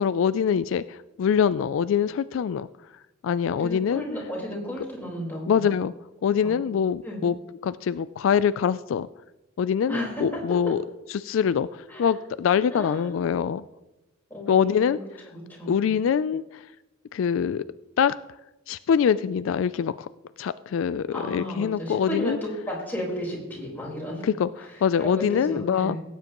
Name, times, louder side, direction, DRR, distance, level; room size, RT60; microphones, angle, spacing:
voice 1, 0.0-2.7 3.2-4.0 5.5-5.9 6.2-7.3 7.6-9.1 9.6-10.8 11.1-13.6 14.5-15.0 15.7-16.7 17.1-17.6 18.0-18.1 18.7-20.1 20.4-22.4 24.2-26.0, left 7 dB, 70° left, 15 dB, 0.3 m, -24 dB
voice 2, 3.5-5.7 6.4-6.6 7.0-7.2 9.9-10.7 11.9-12.1 12.7-13.1 14.3-15.0 15.3-15.8 21.1-24.3 24.6-24.7 25.0-26.0, left 1 dB, 10° left, -4 dB, 4.3 m, -33 dB
18.0 x 9.3 x 3.0 m, 1.0 s
head